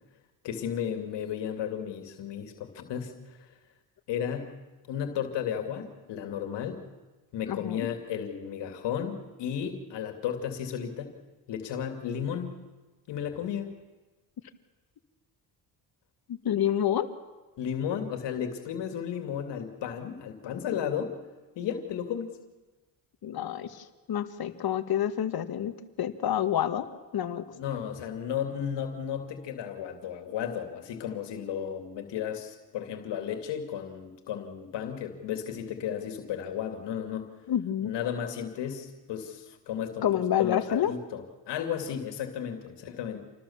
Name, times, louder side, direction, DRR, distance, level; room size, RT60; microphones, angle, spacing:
voice 1, 0.4-3.1 4.1-4.6 4.9-6.8 7.3-11.1 11.5-12.6 13.1-13.8 17.6-21.1 21.6-22.4 27.5-37.3 37.8-43.2, left 8 dB, 80° left, 6 dB, 2.7 m, -34 dB
voice 2, 7.5-7.9 16.3-17.1 23.2-26.9 27.1-27.5 37.5-37.9 40.0-40.9, left 10 dB, 60° left, 10 dB, 1.7 m, -28 dB
27.5 x 19.5 x 7.3 m, 1.2 s
cardioid pair, 85°, 42 cm